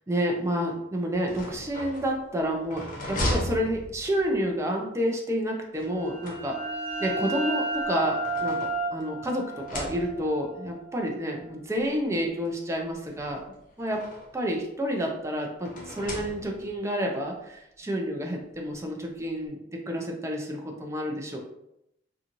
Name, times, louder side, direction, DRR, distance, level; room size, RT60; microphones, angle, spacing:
voice 1, 0.1-6.6 7.0-13.4 13.8-14.0 14.3-21.4, equal, 15° right, 1 dB, 0.4 m, -29 dB
sound 1, 1.1-4.4 5.7-6.9 7.7-9.1 9.5-10.4 11.4-11.5 11.8-11.9 13.1-14.4 15.6-16.8, left 1 dB, 45° left, 0.6 m, -36 dB
sound 2, 5.9-11.4, right 2 dB, 35° right, 0.9 m, -33 dB
2.5 x 2.4 x 2.9 m, 0.82 s
head